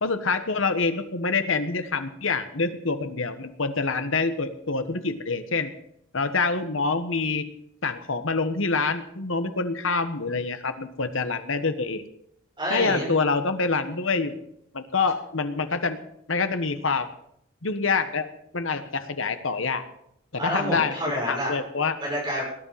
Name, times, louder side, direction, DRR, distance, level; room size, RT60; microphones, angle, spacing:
voice 1, 0.0-5.7 6.1-7.4 7.8-12.0 12.7-14.4 14.7-16.0 16.3-17.1 17.6-18.3 18.5-19.8 20.3-20.9 21.3-21.9, left 4 dB, 75° left, 9 dB, 1.4 m, -26 dB
voice 2, 12.6-13.1 20.4-21.5 22.0-22.4, equal, 20° right, -4 dB, 6.8 m, -28 dB
19.0 x 10.5 x 5.8 m, 0.74 s
head